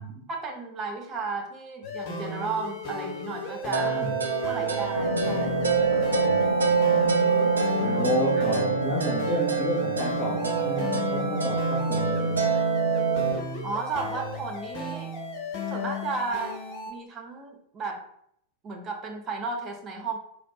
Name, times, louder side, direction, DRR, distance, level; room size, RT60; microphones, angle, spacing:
voice 1, 0.3-4.1 4.5-5.7 7.9-8.1 8.4-8.5 13.6-15.1 15.7-16.5 16.9-18.0 18.6-20.2, right 4 dB, 25° right, 1 dB, 0.9 m, -34 dB
sound 1, 1.8-16.9, left 2 dB, 40° left, 1.1 m, -35 dB
sound 2, 3.7-13.3, right 5 dB, 75° right, 0.7 m, -26 dB
sound 3, 4.9-11.6, left 1 dB, 85° left, 0.3 m, -32 dB
voice 2, 5.9-6.7 7.8-12.5, right 1 dB, 5° right, -8 dB, 1.3 m, -31 dB
4.2 x 3.0 x 3.1 m, 0.70 s
figure-of-eight pair, 90°, 0 cm